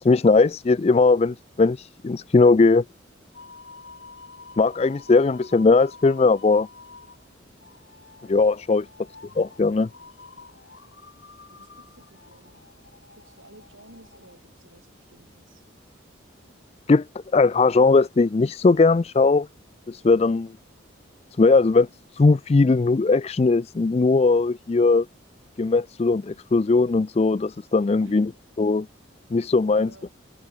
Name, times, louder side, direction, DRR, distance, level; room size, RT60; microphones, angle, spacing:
voice 1, 0.0-2.8 4.6-6.7 8.3-8.9 9.4-9.9 16.9-17.1 17.3-19.5 19.9-20.5 21.4-25.1 25.6-28.3 28.6-28.9 29.3-29.9, left 3 dB, 30° left, 0.3 m, -19 dB
sound 1, 3.3-14.4, left 4 dB, 65° left, 2.9 m, -48 dB
voice 2, 11.5-12.6 13.2-15.6 28.0-28.2 29.7-30.1, right 1 dB, 85° right, 7.5 m, -53 dB
head